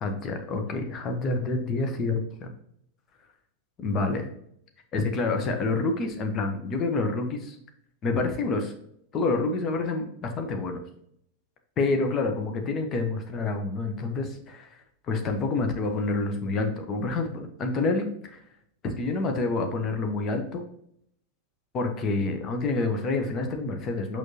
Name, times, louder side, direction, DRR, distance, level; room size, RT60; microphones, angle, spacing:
voice 1, 0.0-2.2 3.8-4.2 4.9-7.6 8.0-8.7 9.1-10.8 11.8-14.8 15.1-18.4 18.8-20.6 21.7-24.2, left 3 dB, 30° left, 4 dB, 1.2 m, -28 dB
6.4 x 6.2 x 2.9 m, 0.70 s
figure-of-eight pair, 90°, 0 cm